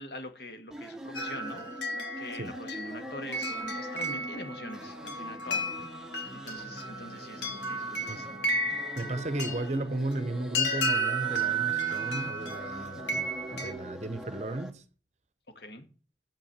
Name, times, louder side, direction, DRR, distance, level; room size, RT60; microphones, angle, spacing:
voice 1, 0.0-1.6 1.9-5.7 6.3-8.5 15.6-15.9, left 1 dB, 60° left, 1.9 m, -44 dB
sound 1, 0.7-14.7, equal, 5° right, 0.9 m, -44 dB
sound 2, 1.1-13.7, right 2 dB, 80° left, 2.1 m, -33 dB
voice 2, 9.0-14.8, right 2 dB, 40° right, 0.8 m, -35 dB
8.4 x 7.4 x 7.3 m
head